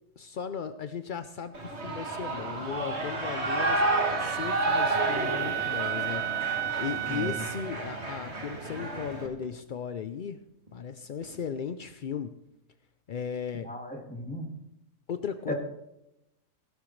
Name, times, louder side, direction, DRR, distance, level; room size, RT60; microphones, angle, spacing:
voice 1, 0.2-6.5 6.8-10.4 10.7-12.3 13.1-13.7 15.1-15.5, left 7 dB, 65° left, 10 dB, 0.5 m, -36 dB
Shout / Cheering, 1.5-9.3, right 2 dB, 45° right, 2.2 m, -31 dB
Wind instrument woodwind instrument, 3.6-7.7, right 13 dB, 65° right, 1.0 m, -33 dB
sound 1, 4.8-4.9 5.1-5.6 6.5-6.6 7.0-7.4 8.7-9.5 10.0-10.1 10.7-11.7, equal, 30° right, 3.0 m, -48 dB
voice 2, 7.1-7.4 13.6-14.5 15.5-15.6, left 1 dB, 5° left, 2 dB, 2.0 m, -35 dB
16.5 x 13.5 x 3.2 m, 0.87 s
omnidirectional pair, 1.6 m